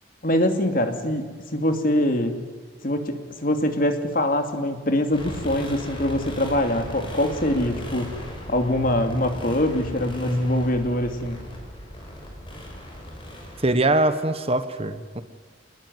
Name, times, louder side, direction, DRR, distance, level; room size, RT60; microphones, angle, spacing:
voice 1, 0.2-2.4 2.8-8.1 8.5-11.4, left 1 dB, 45° left, 6 dB, 2.7 m, -23 dB
sound 1, 5.1-13.7, equal, 25° left, 6.2 m, -37 dB
voice 2, 13.6-15.2, right 2 dB, 30° right, 11 dB, 1.3 m, -22 dB
26.0 x 20.5 x 9.6 m, 1.5 s
head